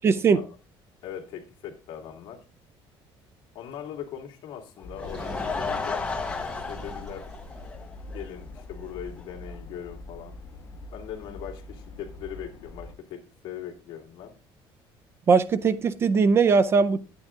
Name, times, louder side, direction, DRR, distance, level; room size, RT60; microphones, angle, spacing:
voice 1, 0.0-0.4 15.3-17.0, right 5 dB, 25° right, 0.4 m, -20 dB
voice 2, 1.0-2.4 3.5-6.1 6.5-7.3 8.1-10.4 10.9-14.3, left 9 dB, 60° left, 2.2 m, -40 dB
sound 1, 4.8-12.9, left 2 dB, 30° left, 2.3 m, -44 dB
Laughter / Crowd, 4.8-8.2 8.6-8.7 9.2-9.3 9.5-9.6, left 4 dB, 10° left, 0.8 m, -33 dB
Sink (filling or washing), 5.0-7.7, right 1 dB, 45° right, 5.5 m, -43 dB
9.9 x 8.9 x 3.6 m
cardioid pair, 180°, 10 cm